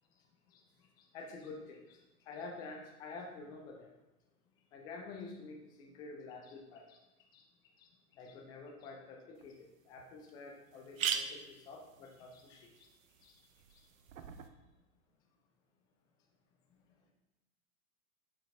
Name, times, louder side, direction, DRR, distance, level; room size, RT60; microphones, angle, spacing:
voice 1, 1.1-2.0 2.3-3.9 4.7-7.0 7.3-7.4 7.8-9.6 9.9-12.9 13.2-13.3 13.7-13.8, left 3 dB, 10° left, 1 dB, 0.4 m, -49 dB
sound 1, 9.4-9.5 10.0-10.1 10.3-10.4 10.7-14.5, right 8 dB, 60° right, 0.7 m, -41 dB
6.9 x 5.8 x 2.7 m, 1.0 s
figure-of-eight pair, 110°, 45 cm